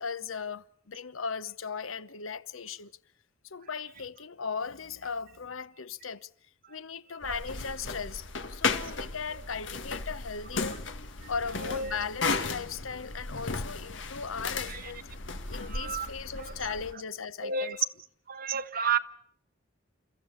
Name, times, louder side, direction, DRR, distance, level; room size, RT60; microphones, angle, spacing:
voice 1, 0.0-3.0 3.4-6.3 6.7-10.9 11.3-15.0 15.5-17.8, left 5 dB, 85° left, 1.0 m, -37 dB
sound 1, 7.2-16.9, left 4 dB, 65° left, 1.7 m, -35 dB
voice 2, 11.6-12.0 14.7-14.8 15.6-16.1 16.4-16.5 17.4-17.8 18.3-19.0, right 6 dB, 45° right, 1.2 m, -31 dB
29.5 x 15.0 x 9.7 m
head